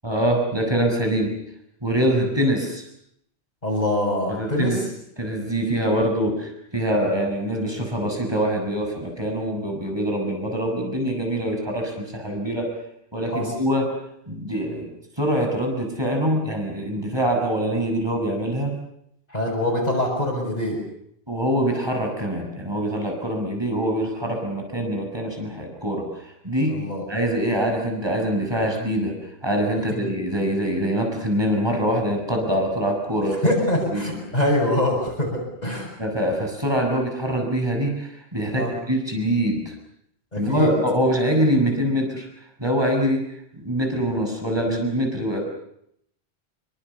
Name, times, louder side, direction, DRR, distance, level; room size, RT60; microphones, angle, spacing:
voice 1, 0.0-1.4 1.8-2.8 4.3-4.8 5.2-12.7 13.1-14.0 14.3-14.9 15.2-18.7 21.3-26.8 27.1-29.2 29.4-33.5 33.9-34.0 36.0-39.7 40.4-42.3 42.6-43.3 43.6-45.4, equal, 20° right, 2 dB, 7.4 m, -24 dB
voice 2, 3.6-4.8 13.3-13.5 14.6-14.8 17.0-17.2 19.3-20.8 26.7-27.0 29.8-30.1 33.4-35.9 38.5-38.7 40.3-40.7, left 1 dB, 40° left, -5 dB, 7.4 m, -24 dB
28.0 x 25.0 x 7.1 m, 0.73 s
omnidirectional pair, 1.1 m